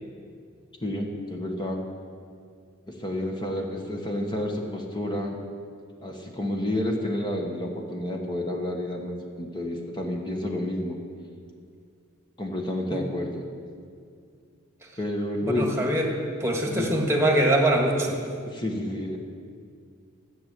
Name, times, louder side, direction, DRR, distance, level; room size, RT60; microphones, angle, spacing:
voice 1, 0.8-1.8 2.9-5.4 6.0-11.0 12.4-13.4 15.0-15.7 16.6-16.9 18.5-19.2, left 1 dB, 20° left, 1 dB, 1.2 m, -30 dB
voice 2, 15.5-18.2, right 1 dB, 15° right, 1 dB, 1.6 m, -23 dB
14.0 x 6.6 x 9.0 m, 2.2 s
head